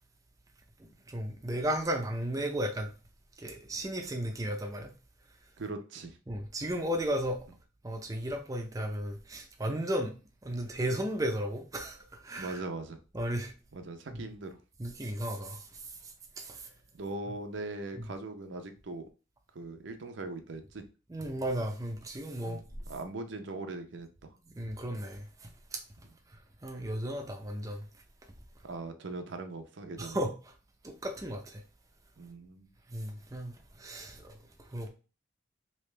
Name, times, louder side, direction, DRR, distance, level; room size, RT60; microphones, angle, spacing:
voice 1, 0.8-2.9 3.4-4.9 6.3-7.4 7.8-10.1 10.4-12.6 13.1-13.5 14.1-14.2 14.8-16.7 18.0-18.1 21.1-22.6 24.5-25.8 26.3-27.8 30.0-30.3 30.8-31.6 32.9-34.9, right 1 dB, 20° right, 0.5 m, -35 dB
voice 2, 5.6-6.2 12.4-13.0 13.7-14.6 17.0-19.1 19.5-20.8 22.4-22.6 22.9-24.3 28.6-30.2 32.2-32.7, right 2 dB, 75° right, 0.6 m, -40 dB
3.3 x 2.9 x 3.2 m
head